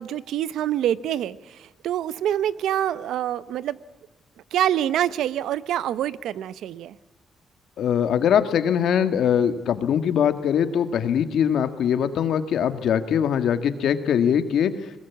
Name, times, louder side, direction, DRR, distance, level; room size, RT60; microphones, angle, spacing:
voice 1, 0.0-3.8 4.5-6.9, right 11 dB, 85° right, 17 dB, 0.8 m, -26 dB
voice 2, 7.8-14.7, left 8 dB, 75° left, 9 dB, 1.8 m, -22 dB
20.5 x 20.5 x 8.5 m, 1.1 s
cardioid pair, 115°, 0 cm